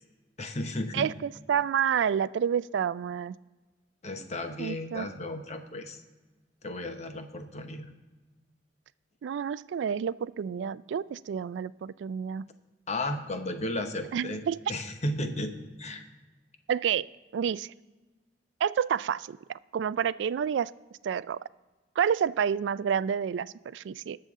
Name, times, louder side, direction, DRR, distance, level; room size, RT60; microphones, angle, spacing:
voice 1, 0.4-1.1 4.0-6.0 6.6-7.9 12.9-14.4 14.7-16.1, left 1 dB, 40° left, 7 dB, 0.9 m, -34 dB
voice 2, 0.9-3.3 4.6-5.1 9.2-12.5 14.1-14.6 16.7-17.1 17.3-17.7 18.6-20.7 21.0-21.4 22.0-24.2, right 8 dB, 75° right, 18 dB, 0.3 m, -29 dB
20.0 x 6.8 x 3.6 m, 1.3 s
head